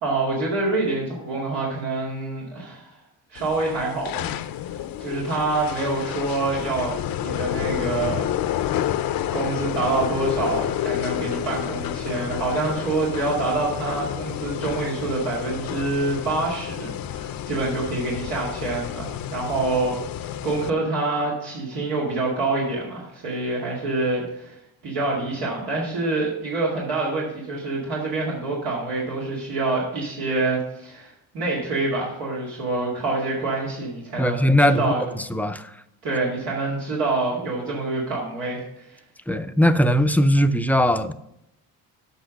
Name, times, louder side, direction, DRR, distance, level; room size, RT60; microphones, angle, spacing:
voice 1, 0.0-2.9 3.3-4.3 4.7-8.7 9.3-24.6 24.8-35.0 36.0-39.0, right 3 dB, 85° right, -5 dB, 2.3 m, -26 dB
sound 1, 3.4-20.7, left 11 dB, 65° left, 0.6 m, -30 dB
voice 2, 34.2-34.9 35.3-35.7 39.3-41.1, equal, 5° left, 9 dB, 0.5 m, -19 dB
8.0 x 5.9 x 6.4 m, 0.82 s
cardioid pair, 95°, 37 cm